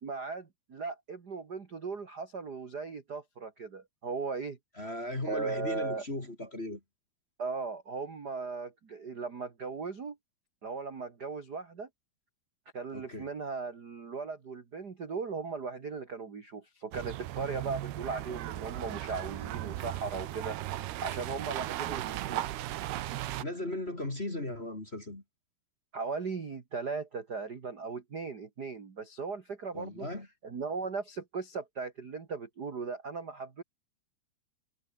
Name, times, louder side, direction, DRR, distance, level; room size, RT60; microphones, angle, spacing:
voice 1, 0.0-4.6 5.3-6.0 7.4-10.2 10.6-11.9 12.7-20.6 21.0-22.5 25.9-30.1 30.4-33.6, right 4 dB, 40° right, 1.6 m, -38 dB
voice 2, 4.8-6.8 12.9-13.3 23.4-25.2 29.7-30.3, left 1 dB, 20° left, 2.6 m, -37 dB
sound 1, 16.9-23.4, right 14 dB, 90° right, 3.2 m, -37 dB
omnidirectional pair, 4.5 m